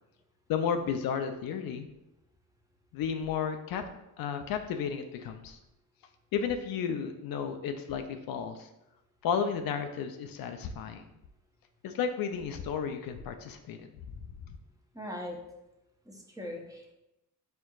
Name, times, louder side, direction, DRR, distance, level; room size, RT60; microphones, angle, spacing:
voice 1, 0.5-1.9 2.9-3.8 4.2-5.6 6.3-8.7 9.2-11.0 11.8-14.2 14.5-14.6, left 7 dB, 65° left, 7 dB, 0.5 m, -33 dB
voice 2, 14.9-15.4 16.1-16.9, left 1 dB, 10° right, 0 dB, 0.7 m, -40 dB
4.4 x 3.6 x 2.3 m, 0.90 s
cardioid pair, 95°, 38 cm